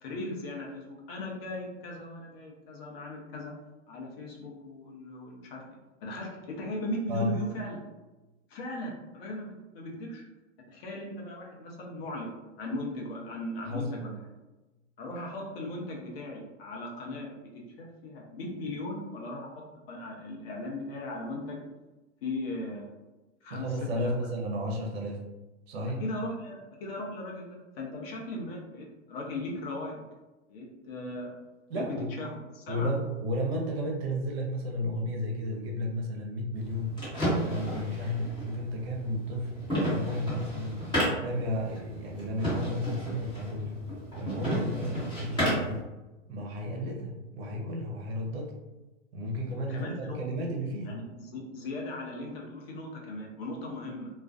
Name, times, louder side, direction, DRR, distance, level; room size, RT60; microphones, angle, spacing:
voice 1, 0.0-3.5 3.9-5.6 6.0-7.8 8.5-10.2 10.7-14.2 15.0-21.6 22.2-22.9 23.4-23.7 24.0-24.1 26.0-30.0 30.5-31.3 31.8-32.3 32.5-32.9 49.7-50.2 50.8-54.1, left 1 dB, 50° left, -1 dB, 0.7 m, -38 dB
voice 2, 7.1-7.4 13.6-13.9 23.5-25.2 25.7-26.0 31.7-32.2 32.7-37.0 37.4-40.9 41.2-43.8 44.1-45.8 46.3-48.6 49.1-51.0, equal, 55° right, 0 dB, 0.7 m, -33 dB
sound 1, 36.6-45.8, equal, 10° left, 1.2 m, -33 dB
2.3 x 2.2 x 2.4 m, 1.1 s
hypercardioid pair, 120°, 38 cm